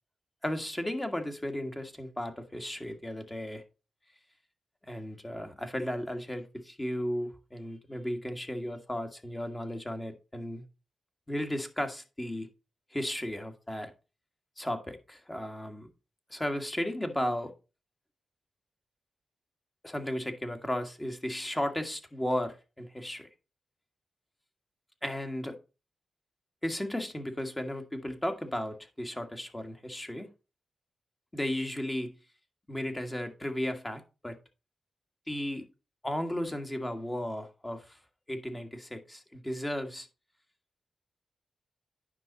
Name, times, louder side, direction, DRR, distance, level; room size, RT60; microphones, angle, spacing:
voice 1, 0.4-3.6 4.9-10.6 11.3-12.5 12.9-13.9 14.6-15.9 16.3-17.5 19.8-23.3 25.0-25.6 26.6-30.3 31.3-32.1 32.7-34.4 35.3-35.7 36.0-38.0 38.3-40.1, left 1 dB, 15° left, 1.8 m, -35 dB
9.7 x 5.8 x 4.1 m
cardioid pair, 75°, 0 cm